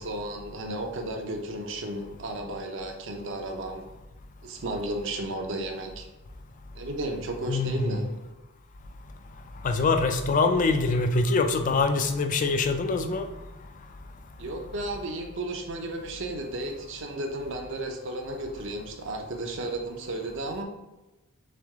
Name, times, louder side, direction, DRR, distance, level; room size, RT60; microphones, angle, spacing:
voice 1, 0.0-3.9 4.4-6.1 6.7-8.0 14.4-20.6, right 1 dB, 55° right, 0.6 m, -34 dB
voice 2, 7.5-8.0 9.6-13.3, left 3 dB, 35° left, 0.3 m, -24 dB
3.6 x 3.3 x 3.5 m
head